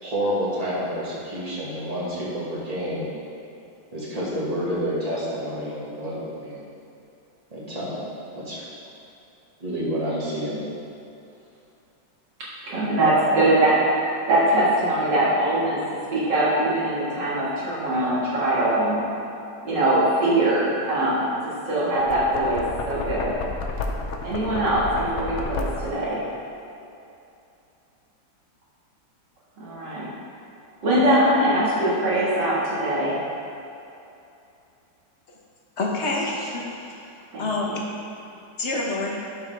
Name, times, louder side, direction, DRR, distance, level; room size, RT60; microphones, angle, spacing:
voice 1, 0.0-3.1 3.9-6.6 7.5-8.1 8.3-8.7 9.6-10.6, equal, 20° right, -7 dB, 1.7 m, -29 dB
voice 2, 12.7-13.8 14.3-15.8 16.1-19.0 19.6-21.3 21.7-23.4 24.2-26.2 29.6-30.1 30.8-33.2 37.3-37.7, right 1 dB, 65° right, -7 dB, 2.5 m, -22 dB
Knock, 21.9-26.1, left 3 dB, 80° left, 0.6 m, -31 dB
voice 3, 35.8-37.0 37.4-37.8 38.6-39.2, left 2 dB, 45° left, -2 dB, 1.1 m, -27 dB
11.0 x 5.5 x 3.4 m, 2.7 s
omnidirectional pair, 2.0 m